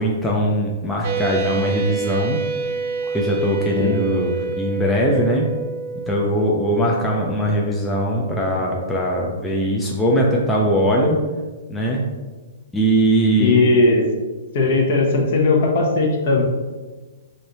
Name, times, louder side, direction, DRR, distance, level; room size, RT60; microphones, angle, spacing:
voice 1, 0.0-2.4 3.1-5.5 6.1-11.2 11.7-12.0 12.7-13.6, equal, 5° left, -3 dB, 0.4 m, -20 dB
sound 1, 1.0-9.1, right 5 dB, 40° right, 0.6 m, -28 dB
voice 2, 13.4-14.1 14.5-16.4, left 3 dB, 50° left, 0 dB, 0.9 m, -17 dB
3.2 x 2.6 x 4.0 m, 1.3 s
hypercardioid pair, 155°, 0 cm